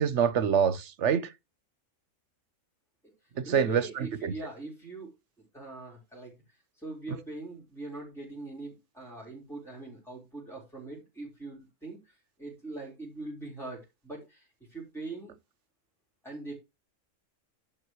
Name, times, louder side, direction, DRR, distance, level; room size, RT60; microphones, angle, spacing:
voice 1, 0.0-1.3 3.4-4.3, right 7 dB, 55° right, 1.2 m, -26 dB
voice 2, 3.4-5.1 5.5-6.3 6.8-15.3 16.2-16.5, right 2 dB, ahead, 4.3 m, -42 dB
11.0 x 7.7 x 3.2 m
omnidirectional pair, 1.5 m